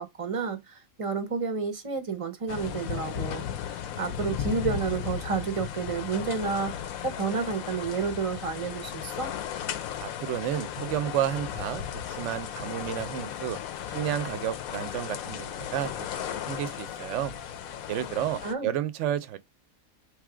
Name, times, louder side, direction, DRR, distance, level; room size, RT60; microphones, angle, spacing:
voice 1, 0.0-9.3 18.4-18.7, right 5 dB, 35° right, 0.5 m, -31 dB
sound 1, 2.5-18.5, left 9 dB, 80° left, 1.0 m, -35 dB
voice 2, 10.0-11.8 12.1-13.6 13.9-17.3 17.9-19.4, right 11 dB, 70° right, 0.8 m, -31 dB
3.5 x 3.1 x 4.8 m
omnidirectional pair, 1.5 m